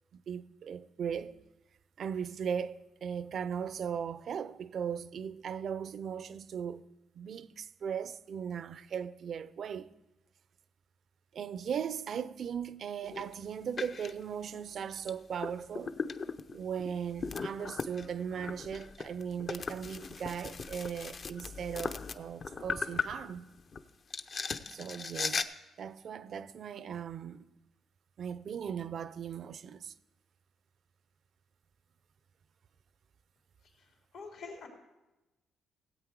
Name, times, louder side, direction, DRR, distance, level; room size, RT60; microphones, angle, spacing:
voice 1, 0.1-1.4 2.0-6.9 7.2-9.9 11.3-16.0 16.5-23.5 24.7-25.5 25.8-27.5 28.2-29.9, right 7 dB, 60° right, 0.5 m, -38 dB
sound 1, 13.0-13.3 13.8-14.1 15.0-15.1 15.4-23.8 24.1-25.4, left 5 dB, 45° left, 0.6 m, -38 dB
voice 2, 33.6-34.7, left 4 dB, 80° left, 3.2 m, -47 dB
16.5 x 8.2 x 4.7 m
cardioid pair, 90°, 0 cm